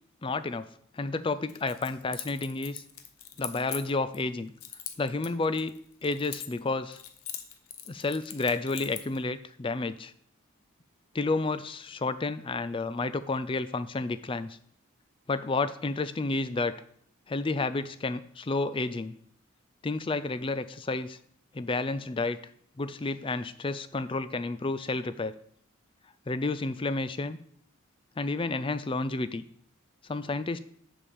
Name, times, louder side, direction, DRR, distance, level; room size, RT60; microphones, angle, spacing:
voice 1, 0.2-0.7 0.9-2.8 3.4-4.5 5.0-5.7 6.0-7.0 7.9-10.1 11.1-14.6 15.3-16.7 17.3-19.1 19.8-21.2 21.5-22.4 22.8-25.3 26.3-27.4 28.2-29.4 30.1-30.6, left 3 dB, 25° left, 13 dB, 0.4 m, -30 dB
Keys jangling, 1.5-4.2 4.6-6.7 6.9-9.2, left 10 dB, 85° left, 0.9 m, -41 dB
7.1 x 5.0 x 7.1 m, 0.64 s
head